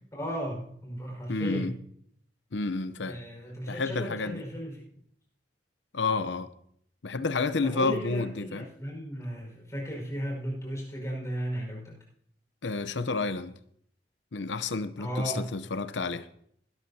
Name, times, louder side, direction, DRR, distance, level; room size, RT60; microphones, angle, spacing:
voice 1, 0.1-1.7 3.0-4.9 7.6-12.0 15.0-15.5, equal, 20° left, 5.2 m, -35 dB
voice 2, 1.3-1.7 2.5-3.2 3.7-4.4 5.9-6.5 7.0-8.6 12.6-13.6 14.3-16.3, left 3 dB, 90° left, 0.8 m, -30 dB
21.0 x 12.5 x 2.8 m
head